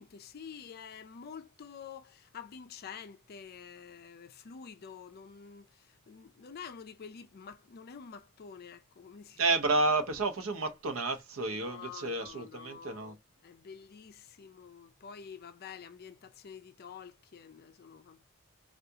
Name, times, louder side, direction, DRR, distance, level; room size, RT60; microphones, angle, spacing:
voice 1, 0.0-9.4 11.4-18.3, left 6 dB, 50° left, 0.4 m, -48 dB
voice 2, 9.4-13.2, right 3 dB, 70° right, 0.7 m, -30 dB
3.4 x 2.4 x 2.7 m
head